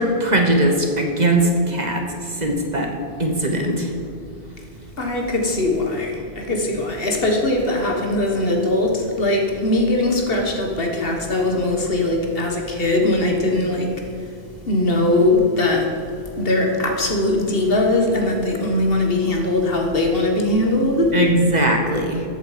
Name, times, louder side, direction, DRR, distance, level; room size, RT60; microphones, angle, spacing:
voice 1, 0.0-2.0 2.4-2.9 3.2-3.9 21.1-22.2, right 1 dB, 40° right, 3 dB, 1.3 m, -19 dB
voice 2, 4.9-14.3 14.6-16.0 16.3-21.2, left 2 dB, 55° left, 2 dB, 1.6 m, -20 dB
14.0 x 8.2 x 5.0 m, 2.4 s
omnidirectional pair, 1.2 m